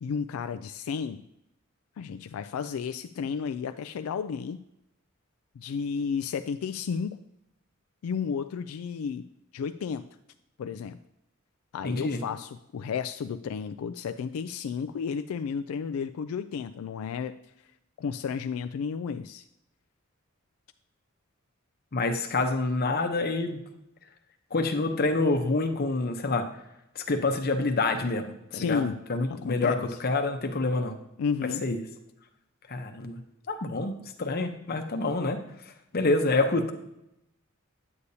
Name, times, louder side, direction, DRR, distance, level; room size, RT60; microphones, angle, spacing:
voice 1, 0.0-1.3 2.0-4.6 5.6-7.2 8.0-9.2 9.5-10.1 10.6-11.0 11.7-17.3 18.0-19.4 28.5-29.0 29.3-30.0 31.2-31.6, left 6 dB, 80° left, 9 dB, 0.3 m, -32 dB
voice 2, 11.8-12.2 21.9-23.6 24.5-26.5 27.0-28.2 28.5-28.8 29.1-31.0 31.6-31.8 32.7-33.2 33.5-35.4 35.9-36.7, left 3 dB, 45° left, 5 dB, 0.8 m, -27 dB
9.7 x 8.2 x 2.8 m, 0.85 s
head